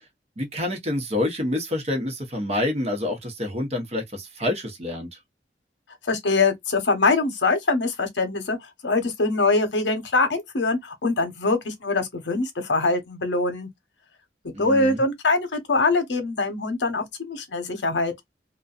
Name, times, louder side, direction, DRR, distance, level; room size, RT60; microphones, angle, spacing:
voice 1, 0.4-5.1 14.5-15.0, left 1 dB, 35° right, 0.8 m, -27 dB
voice 2, 6.1-8.6 8.8-13.7 14.6-18.1, left 3 dB, 85° left, 0.8 m, -23 dB
2.5 x 2.3 x 2.3 m
head